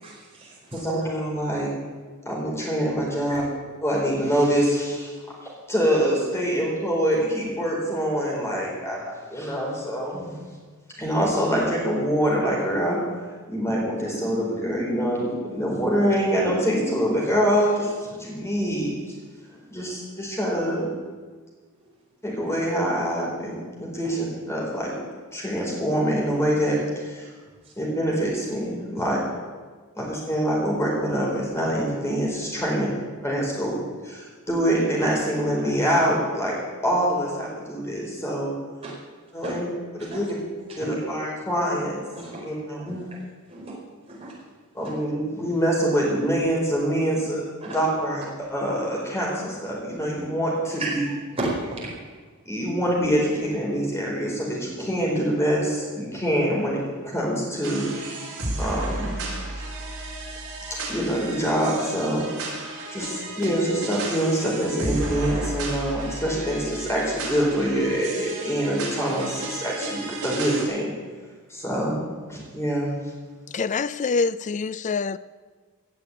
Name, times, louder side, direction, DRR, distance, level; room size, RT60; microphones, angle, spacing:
voice 1, 0.0-0.8 38.8-38.9 39.4-39.5 40.8-40.9 42.1-42.4 42.9-43.2 43.5-43.7 44.1-44.3 47.6-47.8 50.8-51.9, right 2 dB, 25° right, 4.9 m, -33 dB
voice 2, 0.7-1.7 2.2-3.4 3.8-5.1 5.4-10.4 11.0-13.0 13.5-18.9 19.7-20.9 22.2-24.9 25.3-27.3 27.8-29.2 30.0-32.9 33.2-33.8 34.0-36.5 36.8-38.5 39.3-39.7 39.9-40.3 40.7-42.0 42.4-43.0 44.7-51.0 52.5-57.9 58.6-59.1 59.6-59.7 60.8-62.2 62.9-70.9 71.5-72.0 72.3-72.9, equal, 10° left, 4.4 m, -25 dB
sound 1, 57.6-70.6, right 2 dB, 70° right, 4.2 m, -33 dB
voice 3, 73.5-75.2, left 4 dB, 35° left, 0.4 m, -25 dB
17.0 x 6.8 x 9.5 m
head